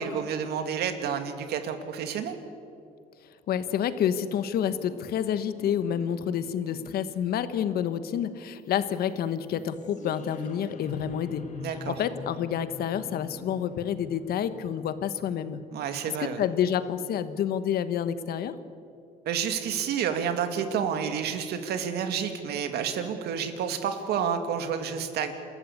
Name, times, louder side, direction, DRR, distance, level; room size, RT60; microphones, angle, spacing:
voice 1, 0.0-2.4 11.6-12.0 15.7-16.4 19.3-25.3, right 7 dB, 70° right, 7 dB, 2.4 m, -30 dB
voice 2, 3.5-11.4 11.9-15.6 16.2-18.5, left 9 dB, 65° left, 12 dB, 1.3 m, -29 dB
Marimba xylophone, 4.5-5.3 5.6-7.0 7.3-8.1 8.4-12.6 13.0-13.7 14.1-14.3, right 2 dB, 35° right, 4.1 m, -51 dB
sound 1, 8.6-18.6, left 5 dB, 45° left, 2.4 m, -47 dB
28.0 x 13.5 x 8.6 m, 2.5 s
cardioid pair, 110°, 17 cm